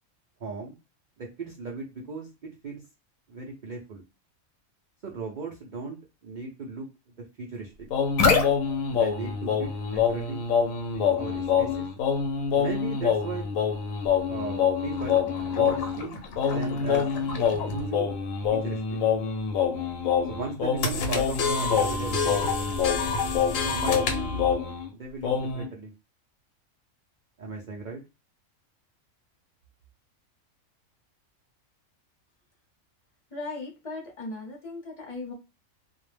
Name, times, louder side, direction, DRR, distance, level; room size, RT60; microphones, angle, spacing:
voice 1, 0.4-0.8 1.2-2.8 3.3-4.0 5.0-7.9 8.9-10.4 10.9-11.9 12.5-13.5 14.3-17.1 17.7-18.1 18.5-19.0 20.3-22.5 23.6-24.4 24.9-25.9 27.4-28.0, right 4 dB, 75° right, -1 dB, 0.4 m, -37 dB
sound 1, 7.9-24.9 25.2-25.7, left 6 dB, 75° left, 1.0 m, -25 dB
voice 2, 33.3-35.3, left 3 dB, 30° left, 0 dB, 0.7 m, -37 dB
2.4 x 2.0 x 3.2 m, 0.29 s
omnidirectional pair, 1.5 m